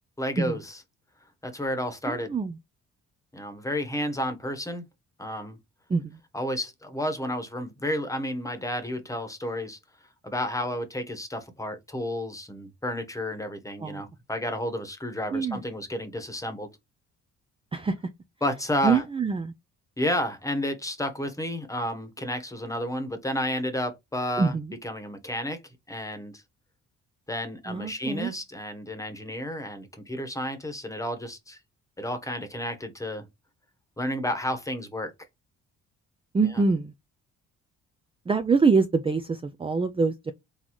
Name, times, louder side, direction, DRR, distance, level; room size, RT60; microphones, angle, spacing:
voice 1, 0.2-0.8 1.4-2.3 3.3-4.8 5.2-5.6 6.3-9.8 10.2-16.7 18.4-19.0 20.0-24.5 24.8-25.6 25.9-26.4 27.3-31.6 32.0-33.3 34.0-35.1 36.5-36.6, left 1 dB, 10° left, 1.1 m, -31 dB
voice 2, 2.1-2.5 5.9-6.2 13.8-14.0 15.3-15.6 17.7-18.0 18.8-19.5 24.4-24.7 27.7-28.3 36.3-36.9 38.3-40.3, right 4 dB, 20° right, 0.4 m, -25 dB
4.0 x 3.7 x 3.1 m
cardioid pair, 90°, 30 cm